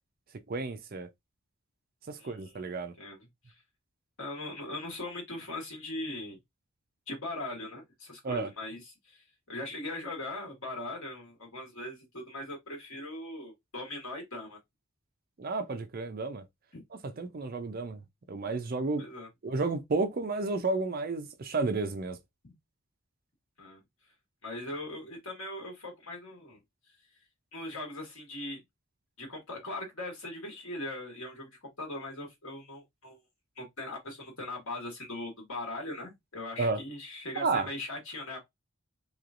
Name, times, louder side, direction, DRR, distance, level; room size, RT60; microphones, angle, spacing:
voice 1, 0.5-1.1 2.1-2.9 8.2-8.5 15.4-16.4 16.9-18.0 18.3-19.1 19.4-22.2 36.6-36.8 37.4-37.7, right 3 dB, 45° right, 0.5 m, -31 dB
voice 2, 2.2-3.3 4.2-6.4 7.1-14.6 16.7-16.8 19.0-19.3 23.6-23.8 24.4-26.6 27.5-28.6 29.2-33.2 33.6-38.4, left 2 dB, 70° left, 1.6 m, -40 dB
3.2 x 2.9 x 2.4 m
head